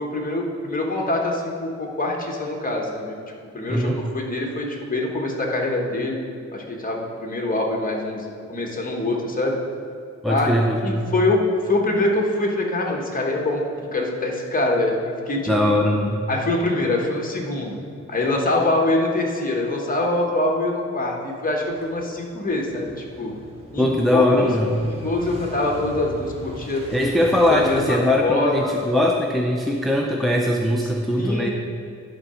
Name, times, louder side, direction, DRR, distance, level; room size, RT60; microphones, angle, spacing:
voice 1, 0.0-3.2 3.5-6.2 6.5-9.6 10.3-10.5 10.8-15.5 16.3-17.8 18.1-23.3 23.7-24.5 24.9-26.8 27.5-28.7 31.2-31.5, left 2 dB, 30° left, 0 dB, 1.2 m, -24 dB
voice 2, 3.7-4.0 10.2-11.1 15.5-16.2 23.8-24.8 26.9-31.5, left 1 dB, ahead, 0 dB, 0.4 m, -20 dB
Motorcycle / Engine starting, 21.7-28.9, equal, 20° right, 1.6 m, -40 dB
11.0 x 3.8 x 5.6 m, 2.4 s
wide cardioid pair, 135°, 29 cm